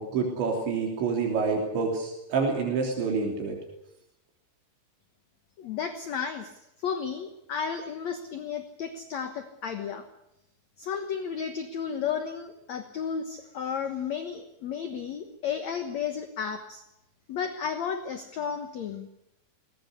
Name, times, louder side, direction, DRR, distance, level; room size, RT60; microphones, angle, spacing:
voice 1, 0.0-3.6, right 4 dB, 80° right, 1 dB, 5.6 m, -27 dB
voice 2, 5.6-6.5 6.8-10.0 10.8-16.8 17.3-19.1, left 7 dB, 70° left, 8 dB, 1.7 m, -33 dB
20.5 x 19.5 x 8.3 m, 0.85 s
omnidirectional pair, 5.1 m